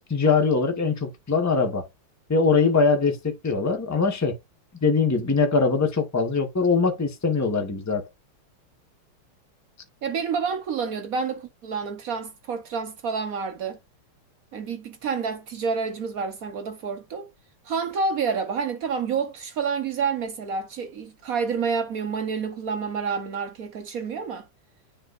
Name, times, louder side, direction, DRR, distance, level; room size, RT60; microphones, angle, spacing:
voice 1, 0.0-1.8 2.3-4.4 4.8-8.1, left 4 dB, 10° left, 0.8 m, -22 dB
voice 2, 10.0-13.8 14.5-17.3 17.6-24.5, right 5 dB, 65° right, 0.9 m, -29 dB
9.7 x 3.9 x 2.5 m
omnidirectional pair, 2.4 m